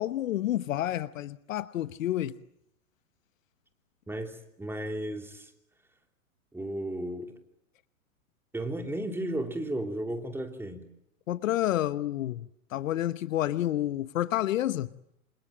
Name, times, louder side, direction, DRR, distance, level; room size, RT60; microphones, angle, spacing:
voice 1, 0.0-2.4 11.3-12.4 12.7-14.9, left 13 dB, 65° left, 1.1 m, -29 dB
voice 2, 4.1-5.5 6.5-7.3 8.5-10.9, right 1 dB, 5° right, 3.2 m, -34 dB
28.0 x 26.5 x 7.6 m
hypercardioid pair, 120°, 43 cm